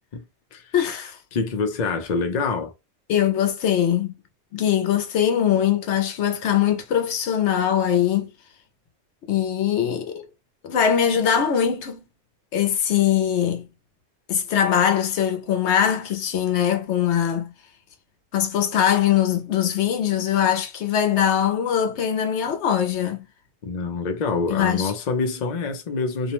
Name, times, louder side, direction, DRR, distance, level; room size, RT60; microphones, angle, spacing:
voice 1, 0.7-1.2 3.1-4.1 4.5-8.3 9.3-10.2 10.6-12.0 12.5-13.7 14.3-17.5 18.3-23.2 24.5-24.9, left 9 dB, 80° left, 0.9 m, -22 dB
voice 2, 1.3-2.7 23.6-26.3, left 4 dB, 50° left, 0.6 m, -26 dB
2.5 x 2.1 x 2.9 m
omnidirectional pair, 1.2 m